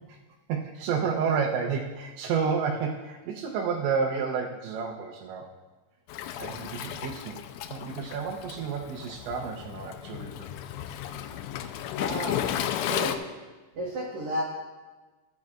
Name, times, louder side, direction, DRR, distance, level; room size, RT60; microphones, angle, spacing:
voice 1, 0.5-5.5 6.4-7.4 7.7-10.5, right 6 dB, 80° right, -1 dB, 3.0 m, -30 dB
Waves surf, 6.1-13.2, left 11 dB, 90° left, 2.9 m, -34 dB
voice 2, 12.0-13.2 13.7-14.4, equal, 65° right, -4 dB, 2.0 m, -33 dB
15.0 x 10.5 x 2.4 m, 1.3 s
omnidirectional pair, 5.2 m